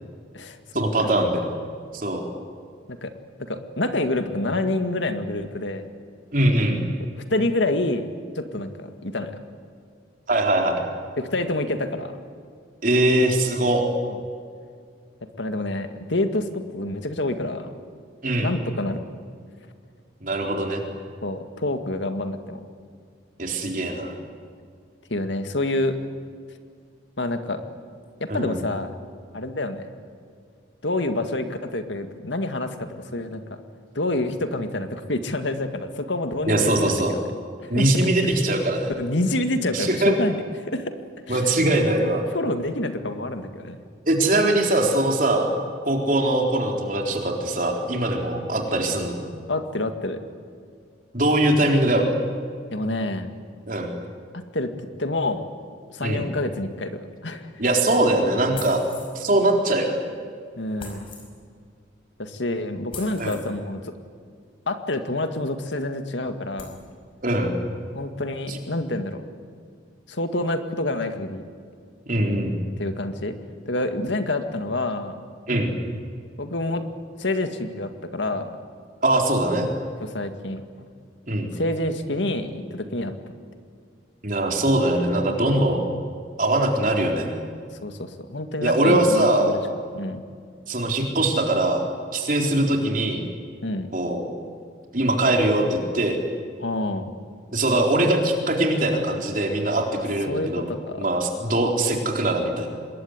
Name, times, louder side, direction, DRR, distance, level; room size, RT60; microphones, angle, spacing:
voice 1, 0.7-1.4 1.9-2.3 6.3-6.8 10.3-10.8 12.8-13.8 18.2-18.6 20.2-20.8 23.4-24.1 28.3-28.6 36.5-37.2 37.7-38.9 39.7-40.1 41.3-42.2 44.1-45.5 45.9-49.2 51.1-52.1 53.7-53.9 56.0-56.3 57.6-58.8 59.1-60.0 63.2-63.4 67.2-67.6 68.5-68.6 72.1-72.6 75.5-75.7 79.0-79.7 81.3-81.5 84.2-85.8 86.4-87.3 88.6-89.6 90.7-91.8 92.1-93.2 93.9-94.2 94.9-96.2 97.5-100.7 101.0-102.7, right 1 dB, 45° right, 2 dB, 4.1 m, -22 dB
voice 2, 3.4-5.8 7.3-8.1 8.3-9.4 11.2-12.1 14.1-14.2 15.4-17.8 18.4-19.0 21.2-22.6 25.1-26.0 27.2-27.6 28.2-28.9 29.3-29.9 30.8-33.4 34.0-37.2 37.6-37.9 39.0-40.9 41.3-41.5 42.3-43.8 49.5-50.2 52.7-53.3 54.5-54.7 55.0-55.5 55.9-57.5 60.6-61.1 62.2-63.9 64.7-66.8 68.0-69.2 70.1-71.5 72.8-73.4 73.7-75.2 76.4-76.8 77.2-78.5 80.0-80.6 81.5-83.1 87.8-89.6 89.9-90.2 93.6-93.9 96.6-97.1 100.3-101.0, left 2 dB, 75° left, 7 dB, 2.1 m, -27 dB
sound 1, 58.5-59.2 60.8-61.3 62.9-63.5 65.4-65.5 66.0-66.1 66.6-66.8, left 4 dB, 30° left, 5.1 m, -40 dB
26.0 x 21.5 x 9.8 m, 2.1 s
head